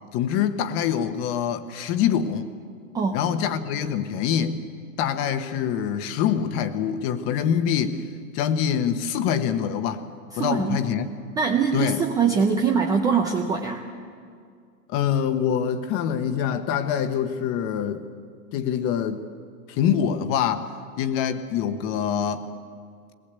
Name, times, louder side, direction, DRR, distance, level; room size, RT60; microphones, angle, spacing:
voice 1, 0.1-2.5 3.1-4.6 5.0-8.0 8.3-10.0 10.4-11.1 11.7-12.0 14.9-18.0 18.5-19.2 19.7-20.7 21.0-22.4, left 8 dB, 30° left, 10 dB, 1.2 m, -25 dB
voice 2, 10.3-10.9 11.4-13.8, right 6 dB, 10° right, 3 dB, 0.5 m, -23 dB
21.0 x 19.0 x 8.3 m, 2.2 s
hypercardioid pair, 150°, 44 cm